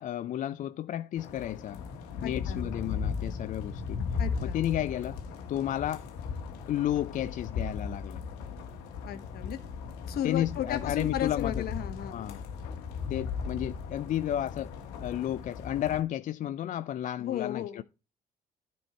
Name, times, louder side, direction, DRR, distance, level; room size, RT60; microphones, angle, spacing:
voice 1, 0.0-1.8 2.2-4.0 4.4-5.2 5.5-6.0 6.7-8.2 10.2-11.7 12.1-12.4 13.1-17.8, left 12 dB, 50° left, 0.4 m, -32 dB
sound 1, 1.2-16.0, left 5 dB, 90° left, 1.2 m, -37 dB
voice 2, 2.2-2.8 4.2-4.6 9.0-9.6 10.1-12.2 17.2-17.8, left 11 dB, 70° left, 1.2 m, -35 dB
10.0 x 4.5 x 4.3 m
supercardioid pair, 70°, 16 cm